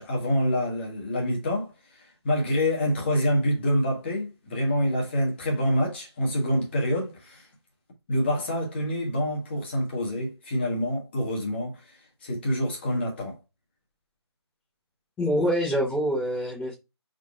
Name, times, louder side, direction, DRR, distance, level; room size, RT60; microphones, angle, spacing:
voice 1, 0.0-1.7 2.2-7.4 8.1-11.7 12.2-13.4, equal, 25° left, 1.3 m, -26 dB
voice 2, 15.2-16.7, equal, 5° left, 0.9 m, -25 dB
5.2 x 3.8 x 2.4 m
hypercardioid pair, 170°, 14 cm